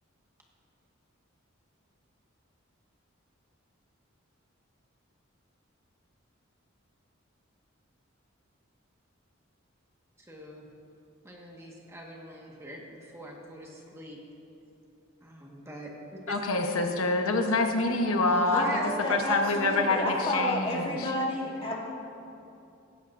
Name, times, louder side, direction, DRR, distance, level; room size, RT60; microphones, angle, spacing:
voice 1, 10.2-10.6 11.2-14.2 15.2-15.9 16.3-16.4 17.3-17.4 18.3-18.9 21.4-21.8, equal, 15° right, -2 dB, 1.5 m, -43 dB
voice 2, 16.3-18.8 19.1-21.1, left 2 dB, 90° left, 3 dB, 1.0 m, -26 dB
voice 3, 18.5-21.8, left 1 dB, 25° left, -3 dB, 1.8 m, -30 dB
16.5 x 16.0 x 2.6 m, 2.8 s
head